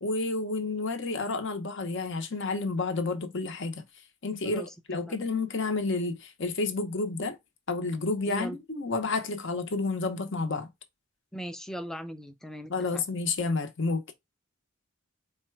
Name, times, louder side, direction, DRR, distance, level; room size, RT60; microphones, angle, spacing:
voice 1, 0.0-3.8 4.2-4.6 4.9-7.4 7.7-10.7 12.7-14.1, left 3 dB, 60° left, 0.9 m, -30 dB
voice 2, 4.4-5.2 8.3-8.6 11.3-13.0, right 1 dB, ahead, 0.5 m, -39 dB
4.2 x 2.3 x 4.4 m
head